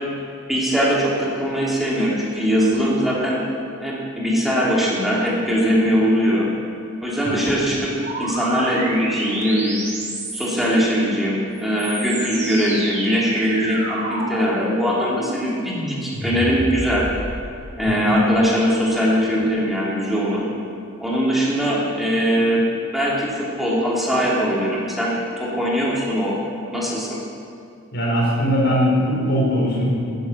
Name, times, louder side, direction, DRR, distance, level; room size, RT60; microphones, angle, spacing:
voice 1, 0.5-3.4 3.8-6.5 7.0-9.8 10.3-17.1 17.8-20.4 21.0-22.7 22.9-26.4 26.7-27.1, equal, ahead, -6 dB, 3.0 m, -21 dB
sound 1, 8.0-10.7 11.5-17.5, right 1 dB, 35° right, 4.1 m, -29 dB
voice 2, 17.9-18.2 27.9-29.8, equal, 55° left, -3 dB, 4.4 m, -20 dB
12.5 x 10.0 x 8.5 m, 2.4 s
head